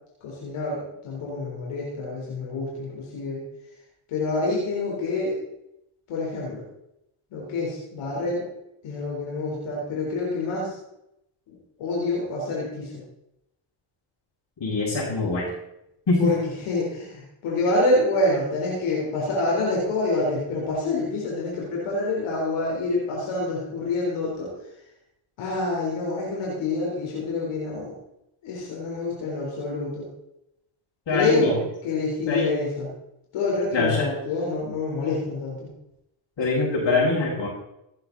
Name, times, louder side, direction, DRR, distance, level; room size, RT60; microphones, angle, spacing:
voice 1, 0.2-3.4 4.1-5.4 6.1-6.6 7.3-8.4 8.8-10.7 11.5-13.0 16.2-16.4 16.7-24.5 25.4-28.0 28.4-30.1 31.1-32.9 33.3-35.7, left 2 dB, 85° left, -4 dB, 4.0 m, -27 dB
voice 2, 14.6-15.5 16.1-16.3 31.1-31.5 32.3-32.5 33.7-34.1 36.4-37.5, left 3 dB, 60° left, -7 dB, 6.2 m, -23 dB
16.5 x 11.0 x 4.1 m, 0.84 s
supercardioid pair, 55°, 49 cm